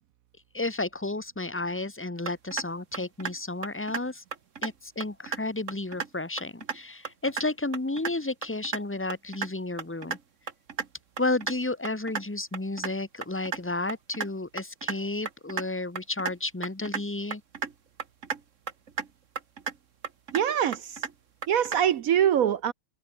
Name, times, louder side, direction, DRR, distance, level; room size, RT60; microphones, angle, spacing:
voice 1, 0.5-4.2 4.6-10.2 11.2-17.4, left 2 dB, 10° left, 1.0 m, -32 dB
sound 1, 2.3-2.6 2.9-3.4 3.6-4.0 4.3-4.7 5.0-5.4 5.7-6.1 6.4-6.8 7.1-7.4 7.7-8.1 8.4-8.8 9.1-9.5 9.8-10.2 10.5-10.9 11.2-11.5 11.9-12.2 12.5-12.9 13.2-13.6 13.9-14.3 14.6-15.0 15.3-15.6 16.0-16.3 16.6-17.0 17.3-17.7 18.0-18.4 18.7-19.1 19.4-19.7 20.0-20.4 20.7-21.1 21.4-21.8, right 6 dB, 45° right, 1.9 m, -33 dB
voice 2, 20.3-21.0 21.5-22.7, right 10 dB, 65° right, 0.9 m, -24 dB
omnidirectional pair, 1.9 m